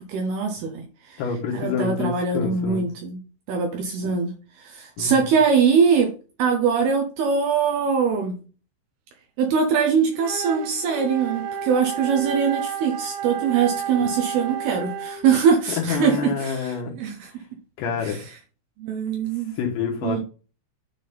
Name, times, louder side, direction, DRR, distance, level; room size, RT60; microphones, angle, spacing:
voice 1, 0.0-1.2 1.5-3.2 3.5-6.1 6.4-8.4 9.4-17.3 18.0-18.2 18.8-19.5 20.0-20.2, right 6 dB, 75° right, 2.7 m, -22 dB
voice 2, 1.2-2.8 5.0-5.3 15.8-17.0 17.8-18.2 19.6-20.2, left 6 dB, 85° left, 3.5 m, -27 dB
Wind instrument woodwind instrument, 10.1-15.4, right 7 dB, 90° right, 3.1 m, -32 dB
9.5 x 3.6 x 4.0 m
omnidirectional pair, 5.0 m